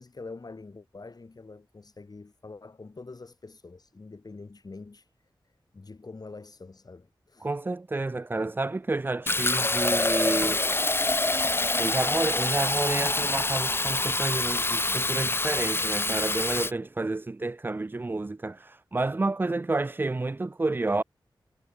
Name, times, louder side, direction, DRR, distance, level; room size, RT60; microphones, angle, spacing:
voice 1, 0.0-5.1 5.4-7.5, left 3 dB, 50° left, 6.1 m, -45 dB
voice 2, 7.4-10.6 11.8-21.0, right 2 dB, 25° right, 0.4 m, -30 dB
Fill (with liquid), 9.3-16.7, left 2 dB, 25° left, 0.8 m, -26 dB
cardioid pair, 60°, 8 cm